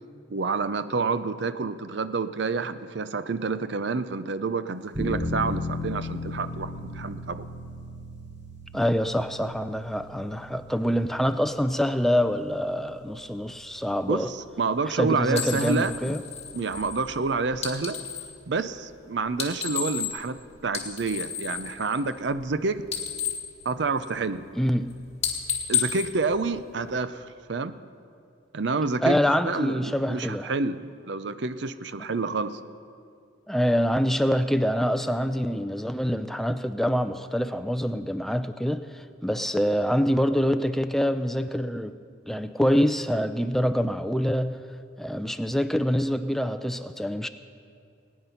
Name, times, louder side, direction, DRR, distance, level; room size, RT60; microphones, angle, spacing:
voice 1, 0.3-7.4 14.1-16.1 16.5-18.0 18.5-22.9 23.6-24.5 25.7-27.8 28.5-29.2 29.4-32.6, right 4 dB, 65° right, 12 dB, 0.5 m, -28 dB
sound 1, 4.9-15.7, left 2 dB, 40° right, 4.0 m, -37 dB
voice 2, 8.7-14.3 15.0-16.2 24.5-24.9 29.0-30.5 33.5-41.9 42.3-44.6 45.0-47.3, equal, ahead, 10 dB, 0.4 m, -25 dB
sound 2, 15.3-18.4 19.3-20.4 20.6-22.5 22.8-24.4 24.7-24.9 25.2-27.0, left 8 dB, 35° left, 1.8 m, -32 dB
20.5 x 9.6 x 5.7 m, 2.4 s
head